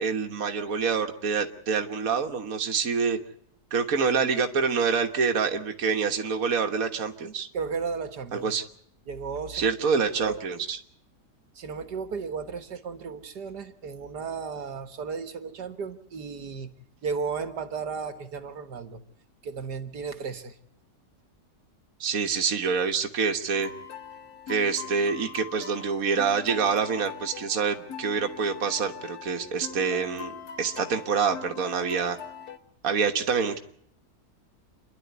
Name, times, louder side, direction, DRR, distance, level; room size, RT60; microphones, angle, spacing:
voice 1, 0.0-3.2 3.7-7.5 8.3-8.6 9.5-10.8 22.0-23.7 24.5-30.3 30.6-32.2 32.8-33.6, right 5 dB, 55° right, 5 dB, 1.8 m, -26 dB
voice 2, 7.5-8.6 9.1-9.8 10.2-10.4 11.6-16.7 17.0-19.0 19.4-20.6, right 5 dB, 80° right, 10 dB, 2.1 m, -34 dB
sound 1, 23.5-32.6, left 6 dB, 65° left, 1.8 m, -42 dB
28.0 x 11.5 x 9.5 m, 0.67 s
omnidirectional pair, 1.8 m